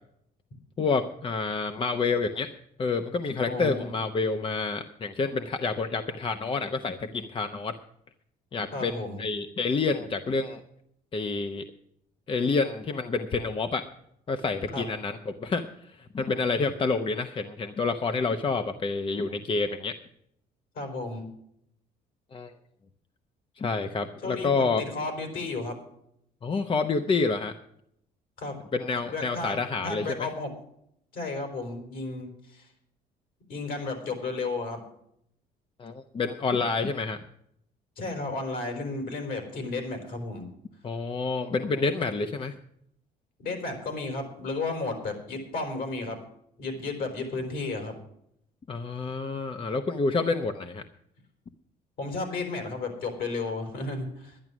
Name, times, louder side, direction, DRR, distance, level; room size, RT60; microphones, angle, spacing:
voice 1, 0.8-2.5 2.8-7.7 8.5-10.6 11.1-11.6 12.3-13.8 14.3-15.7 16.1-19.9 22.3-22.5 23.6-24.8 26.4-27.5 28.7-30.3 35.8-37.2 40.8-42.5 48.7-50.8, left 4 dB, 30° left, 8 dB, 0.8 m, -28 dB
voice 2, 3.5-3.9 8.7-9.2 14.7-14.9 20.7-21.3 24.2-25.8 28.4-28.6 29.1-29.6 29.8-30.5 31.1-32.7 33.5-34.8 38.0-40.5 43.4-46.2 46.6-47.9 52.0-54.4, left 3 dB, 60° left, 4 dB, 4.4 m, -33 dB
11.0 x 11.0 x 6.1 m, 0.73 s
cardioid pair, 110°, 17 cm